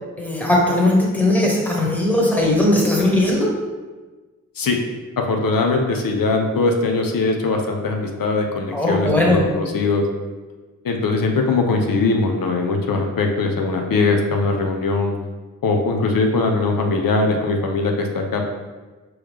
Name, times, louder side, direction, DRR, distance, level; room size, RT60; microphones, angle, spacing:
voice 1, 0.2-3.5 8.7-9.4, left 1 dB, 5° left, -3 dB, 1.1 m, -18 dB
voice 2, 5.2-10.1 10.8-15.1 15.6-18.4, left 3 dB, 90° left, 2 dB, 0.6 m, -21 dB
4.9 x 3.1 x 3.5 m, 1.3 s
wide cardioid pair, 70°, 33 cm